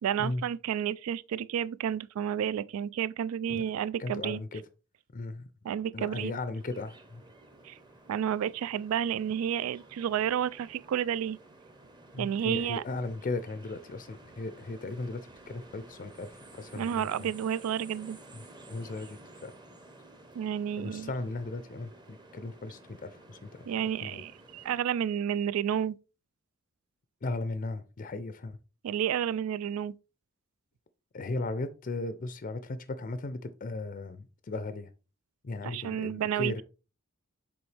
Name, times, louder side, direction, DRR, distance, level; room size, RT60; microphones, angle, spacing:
voice 1, 0.0-4.4 5.6-6.3 7.6-7.8 8.1-11.4 12.2-12.8 16.8-18.2 20.3-21.1 23.7-26.0 28.8-29.9 35.6-36.6, right 9 dB, 85° right, 0.3 m, -31 dB
voice 2, 4.0-4.6 5.1-5.5 5.9-7.2 12.1-17.3 18.3-18.4 18.7-19.5 20.8-23.7 24.0-24.2 27.2-28.6 31.1-34.9 35.4-36.6, left 2 dB, 40° left, 0.4 m, -37 dB
sound 1, 6.6-24.8, right 2 dB, 20° right, 0.8 m, -53 dB
7.0 x 4.3 x 3.3 m
head